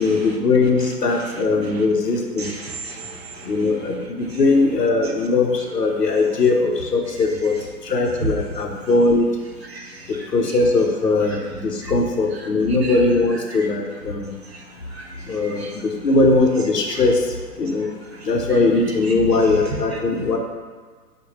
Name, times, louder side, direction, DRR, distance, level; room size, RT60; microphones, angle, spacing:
voice 1, 0.0-2.5 3.4-7.6 7.8-9.3 10.1-14.3 15.3-17.2 17.6-17.9 18.3-20.4, left 3 dB, 80° left, 2 dB, 0.8 m, -20 dB
voice 2, 2.4-3.7 4.3-4.4 8.2-8.3 9.7-10.6 11.8-11.9 12.8-13.0 13.6-13.7 14.5-14.6 14.9-15.7 19.7-19.8, right 3 dB, 45° right, 2 dB, 0.4 m, -34 dB
5.0 x 2.3 x 3.1 m, 1.5 s
figure-of-eight pair, 125°, 47 cm